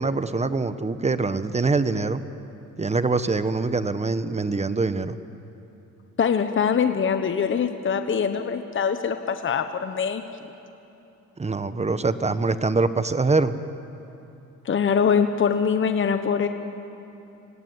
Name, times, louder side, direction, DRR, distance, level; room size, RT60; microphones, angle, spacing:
voice 1, 0.0-2.2 2.8-5.2 11.4-13.5, right 3 dB, 20° right, 12 dB, 1.1 m, -24 dB
voice 2, 6.2-10.2 14.6-16.5, left 6 dB, 40° left, 8 dB, 1.2 m, -23 dB
26.5 x 17.5 x 9.6 m, 2.9 s
cardioid pair, 90°, 30 cm